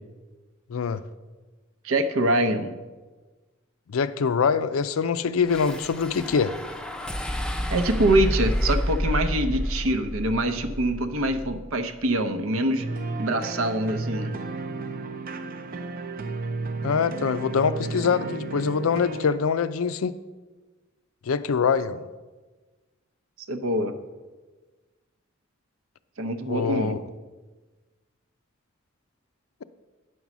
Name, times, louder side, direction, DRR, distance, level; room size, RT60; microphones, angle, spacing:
voice 1, 0.7-1.0 3.9-6.5 16.8-20.2 21.3-22.0 26.4-27.0, left 6 dB, 80° left, 14 dB, 0.4 m, -24 dB
voice 2, 1.8-2.8 7.7-12.9 13.2-14.3 23.5-23.9 26.2-27.0, right 1 dB, 80° right, 9 dB, 0.7 m, -24 dB
sound 1, 5.5-11.8, equal, 5° left, 0.5 m, -29 dB
sound 2, 12.8-19.4, right 3 dB, 45° right, 0.6 m, -33 dB
9.4 x 5.4 x 6.0 m, 1.3 s
head